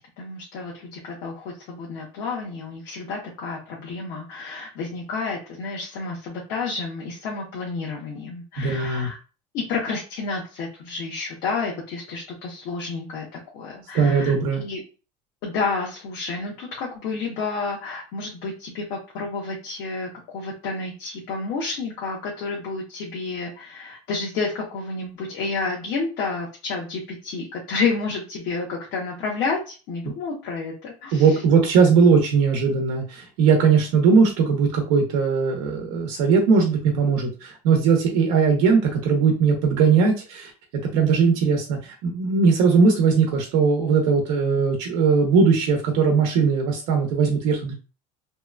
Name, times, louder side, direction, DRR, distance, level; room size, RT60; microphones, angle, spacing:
voice 1, 0.2-9.2 9.5-13.2 13.5-14.8 15.4-31.4, left 4 dB, 65° left, -3 dB, 0.9 m, -30 dB
voice 2, 8.6-9.1 13.9-14.6 31.1-40.5 40.9-47.7, right 5 dB, 80° right, 2 dB, 0.8 m, -19 dB
2.8 x 2.3 x 2.2 m, 0.34 s
cardioid pair, 130°, 17 cm